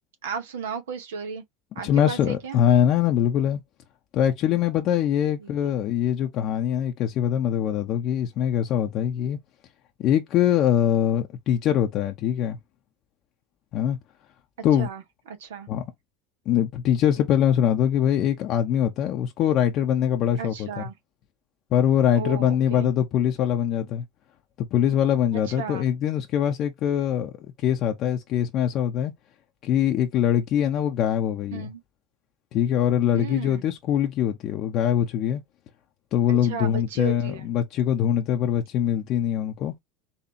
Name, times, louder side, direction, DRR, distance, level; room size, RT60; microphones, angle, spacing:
voice 1, 0.2-1.4 1.7-2.6 5.4-5.5 14.8-15.0 15.3-15.7 20.4-20.9 22.1-22.9 25.5-25.9 31.5-31.8 33.1-33.6 36.3-37.5, right 6 dB, 85° right, 1.0 m, -34 dB
voice 2, 1.8-3.6 4.1-9.4 10.0-12.6 13.7-14.0 14.6-14.9 15.7-15.8 16.5-20.9 21.7-24.0 24.6-27.3 27.6-29.1 29.6-31.7 32.5-35.4 36.1-39.7, left 10 dB, 50° left, 0.7 m, -23 dB
4.2 x 2.7 x 2.8 m
hypercardioid pair, 85°, 0 cm